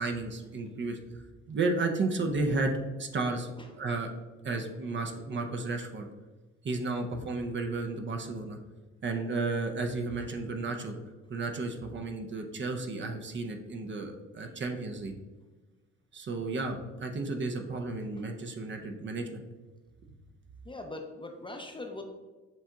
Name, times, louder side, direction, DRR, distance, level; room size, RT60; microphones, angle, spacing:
voice 1, 0.0-2.7 3.0-3.5 3.8-4.1 4.4-6.1 6.6-8.6 9.0-11.0 11.3-15.1 16.1-19.4, right 3 dB, 40° right, 4 dB, 0.6 m, -33 dB
voice 2, 20.6-22.0, left 2 dB, 15° left, 3 dB, 0.6 m, -43 dB
7.2 x 2.7 x 2.3 m, 1.2 s
cardioid pair, 90°, 30 cm